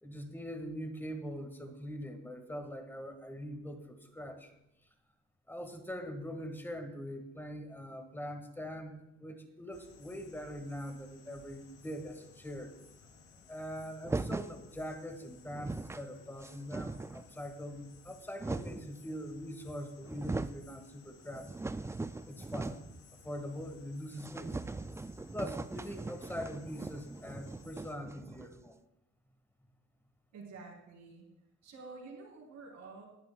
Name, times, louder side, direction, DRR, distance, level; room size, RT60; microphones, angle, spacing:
voice 1, 0.0-4.5 5.5-12.7 13.5-21.7 22.3-22.8 23.2-24.6 25.3-28.8, equal, 5° left, 6 dB, 1.9 m, -43 dB
sound 1, 9.7-28.0, left 5 dB, 75° left, 3.0 m, -60 dB
sound 2, 14.0-14.6 15.2-15.3 15.5-16.1 16.4-17.3 18.0-18.9 19.7-19.8 20.0-20.6 21.1-23.0 23.3-23.4 23.7-23.8 24.2-28.7, right 3 dB, 10° right, 0.3 m, -40 dB
voice 2, 30.3-31.3 31.6-33.0, right 3 dB, 75° right, -3 dB, 3.9 m, -49 dB
18.5 x 10.5 x 2.4 m, 0.91 s
cardioid pair, 90°, 30 cm